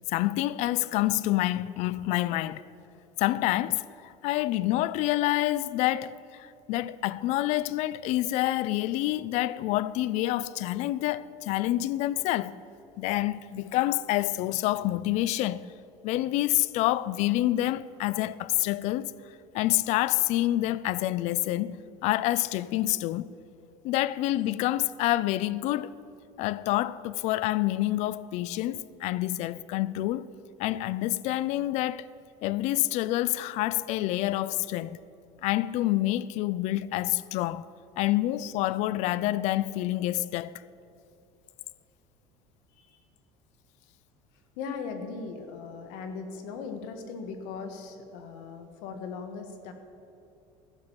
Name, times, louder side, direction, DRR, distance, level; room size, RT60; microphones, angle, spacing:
voice 1, 0.1-2.6 3.2-12.6 13.0-15.7 16.0-19.1 19.5-23.3 23.8-25.9 26.4-30.3 30.6-32.1 32.4-35.0 35.4-40.6, left 15 dB, 55° left, 0.4 m, -27 dB
voice 2, 44.6-49.7, left 5 dB, 75° left, 1.5 m, -39 dB
15.0 x 5.2 x 7.3 m
cardioid pair, 135°, 14 cm